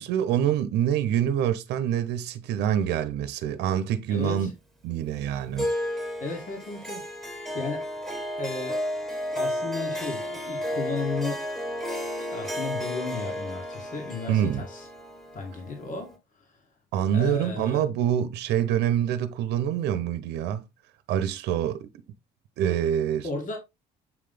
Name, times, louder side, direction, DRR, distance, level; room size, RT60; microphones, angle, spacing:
voice 1, 0.0-4.5 4.8-5.7 14.3-14.6 16.9-20.6 21.1-21.9 22.6-23.3, right 10 dB, 80° right, 0.8 m, -26 dB
voice 2, 4.1-4.5 6.2-7.9 8.4-8.8 9.3-11.5 12.3-14.9 15.3-16.2 17.1-17.8 23.2-23.6, left 4 dB, 50° left, 2.1 m, -34 dB
Harp, 5.6-16.2, left 1 dB, ahead, 1.7 m, -32 dB
7.5 x 3.4 x 3.7 m
cardioid pair, 110°, 17 cm